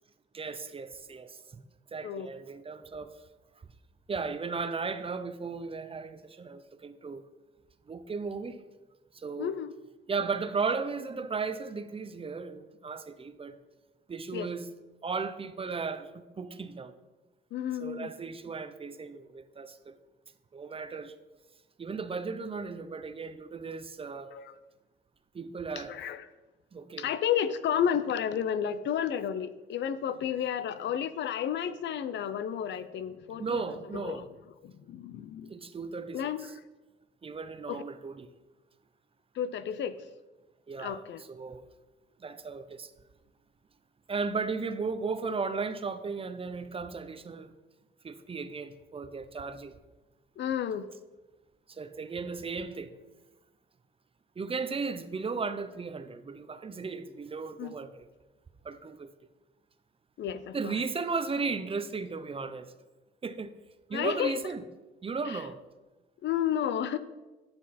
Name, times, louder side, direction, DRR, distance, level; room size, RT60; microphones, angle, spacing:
voice 1, 0.3-1.6 1.9-3.1 4.1-7.2 7.9-8.6 9.1-9.6 10.1-13.5 14.1-14.7 15.0-16.9 17.8-20.0 20.5-21.1 21.8-24.3 25.3-25.9 26.7-27.1 33.4-34.2 35.5-36.5 37.2-38.3 40.7-41.7 42.2-42.9 44.1-47.5 48.0-49.7 51.7-52.9 54.4-58.1 58.6-59.1 60.5-62.7 63.2-63.5 63.9-64.7 65.0-65.6, right 4 dB, 30° right, 0.6 m, -35 dB
voice 2, 9.4-9.7 14.3-14.5 17.5-18.1 24.3-24.5 25.9-26.2 27.0-33.6 34.0-34.2 34.6-35.5 36.1-36.5 37.7-37.8 39.4-40.0 40.8-41.2 50.4-50.9 57.6-57.7 60.2-60.8 63.9-64.3 66.2-67.0, left 9 dB, 65° left, 0.5 m, -31 dB
9.5 x 6.0 x 4.2 m
cardioid pair, 90°, 20 cm